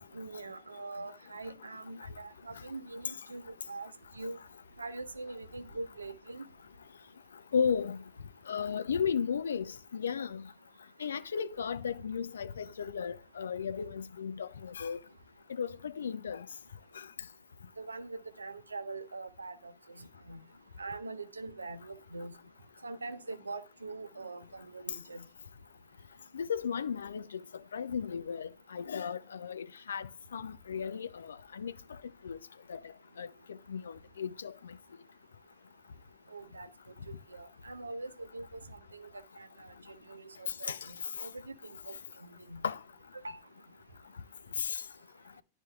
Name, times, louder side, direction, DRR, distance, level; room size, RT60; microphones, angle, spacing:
voice 1, 0.0-3.9 4.1-4.4 4.8-6.4 17.8-20.4 20.8-22.3 22.8-25.3 36.3-36.7 37.3-39.1 39.4-39.5 40.1-40.7 41.2-41.9 42.5-42.6 43.2-43.4, right 3 dB, 80° right, 0.6 m, -43 dB
voice 2, 7.5-8.0 8.5-10.4 11.0-15.0 15.6-16.5 17.0-17.1 26.3-27.4 27.7-31.7 32.2-32.4 32.7-32.8 33.2-33.3 33.7-34.5 40.7-40.8 42.6-42.8 44.6-44.8, left 7 dB, 70° left, 0.4 m, -35 dB
11.5 x 4.4 x 2.3 m
figure-of-eight pair, 90°, 0 cm